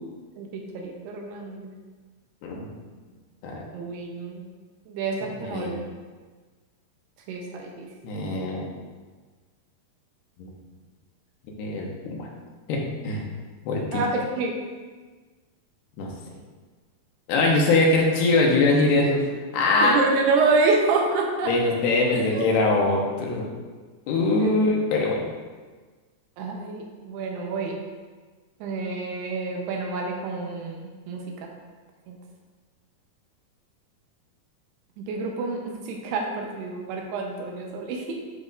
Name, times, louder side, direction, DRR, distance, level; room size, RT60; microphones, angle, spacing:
voice 1, 0.4-1.7 3.7-4.4 4.9-5.8 7.3-7.9 13.9-14.6 19.8-21.5 22.1-22.4 24.4-24.5 26.4-27.8 28.6-31.5 32.1-32.2 35.0-38.1, right 3 dB, 80° right, 1 dB, 2.9 m, -27 dB
voice 2, 5.4-5.7 8.0-8.6 10.4-10.5 11.5-12.3 12.7-13.2 13.7-14.0 16.0-16.1 17.3-19.2 19.5-19.9 21.5-23.5 24.1-25.2, left 2 dB, 80° left, -1 dB, 2.9 m, -22 dB
10.5 x 5.3 x 2.5 m, 1.4 s
omnidirectional pair, 4.7 m